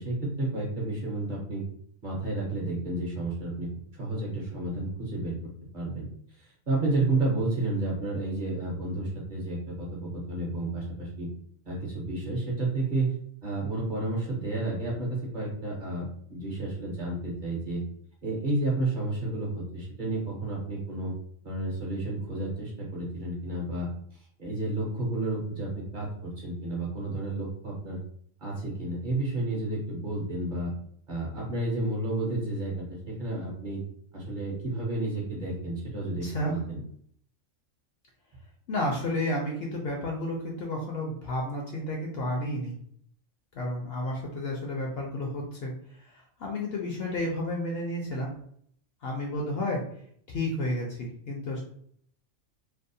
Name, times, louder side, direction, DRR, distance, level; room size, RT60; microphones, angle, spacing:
voice 1, 0.0-1.6 2.0-5.4 5.7-6.1 6.4-11.3 11.7-13.1 13.4-17.8 18.2-21.1 21.4-23.9 24.4-28.0 28.4-30.7 31.1-33.8 34.1-36.8, right 2 dB, 45° right, -4 dB, 0.7 m, -31 dB
voice 2, 36.2-36.6 38.7-42.8 43.5-48.3 49.0-49.8 50.3-51.6, left 1 dB, 65° left, -1 dB, 0.7 m, -31 dB
2.6 x 2.0 x 2.6 m, 0.63 s
omnidirectional pair, 1.4 m